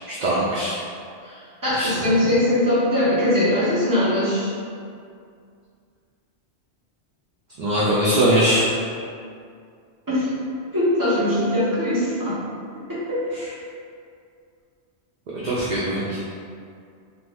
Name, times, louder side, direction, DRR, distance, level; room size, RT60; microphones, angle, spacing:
voice 1, 0.1-0.7 1.2-1.4 1.8-2.2 7.6-8.8 13.3-13.5 15.4-16.2, right 1 dB, 55° right, -8 dB, 0.5 m, -22 dB
voice 2, 1.6-4.5 10.1-10.3 10.7-12.4 12.9-13.2, left 1 dB, 20° right, -11 dB, 0.9 m, -21 dB
2.6 x 2.6 x 3.3 m, 2.3 s
omnidirectional pair, 1.2 m